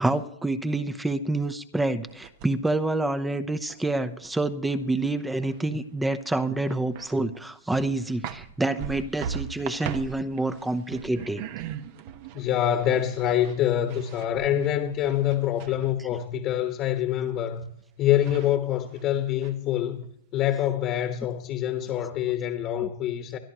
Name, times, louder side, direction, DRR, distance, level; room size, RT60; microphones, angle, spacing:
voice 1, 0.0-11.4 22.8-22.9, right 2 dB, 5° right, 0.8 m, -27 dB
searching for something, 2.1-2.8 3.2-5.8 6.0-6.1 6.6-7.4 7.7-16.3 17.8-17.9 18.2-19.0 19.4-20.1, right 8 dB, 50° right, 1.0 m, -40 dB
voice 2, 12.3-17.7 18.0-20.0 20.3-23.4, left 11 dB, 35° left, 1.3 m, -25 dB
22.0 x 12.5 x 3.0 m
hypercardioid pair, 130°, 0 cm